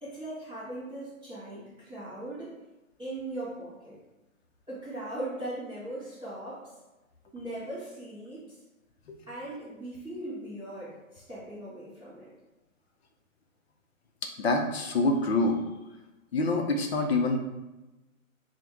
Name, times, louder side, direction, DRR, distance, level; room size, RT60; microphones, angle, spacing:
voice 1, 0.0-2.6 3.0-4.0 4.7-6.7 7.3-8.6 9.3-12.3, right 1 dB, 5° right, -19 dB, 0.4 m, -39 dB
voice 2, 14.4-15.6 16.3-17.4, left 2 dB, 50° left, 3 dB, 0.5 m, -26 dB
3.3 x 2.1 x 4.2 m, 1.1 s
figure-of-eight pair, 125°, 41 cm